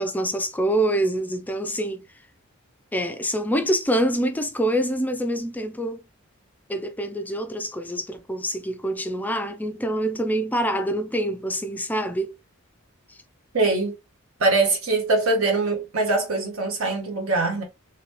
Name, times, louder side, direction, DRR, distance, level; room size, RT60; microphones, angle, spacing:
voice 1, 0.0-2.1 2.9-6.0 6.7-12.4, right 1 dB, 10° left, 0.4 m, -25 dB
voice 2, 13.5-13.9 14.4-17.6, right 3 dB, 80° right, 1.3 m, -22 dB
3.3 x 2.8 x 3.0 m
head